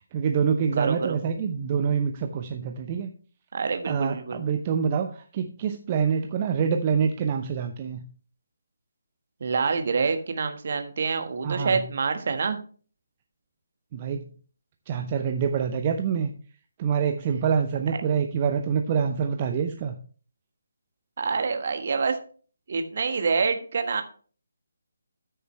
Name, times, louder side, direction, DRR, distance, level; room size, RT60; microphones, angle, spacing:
voice 1, 0.1-3.1 3.8-8.0 11.4-11.8 13.9-14.3 14.9-16.3 16.8-20.0, right 7 dB, 25° right, 5 dB, 0.7 m, -26 dB
voice 2, 0.8-1.2 3.5-4.4 9.4-12.6 21.2-22.2 22.7-24.0, right 5 dB, 45° right, 7 dB, 1.4 m, -26 dB
13.5 x 6.7 x 3.2 m, 0.41 s
figure-of-eight pair, 145°, 0 cm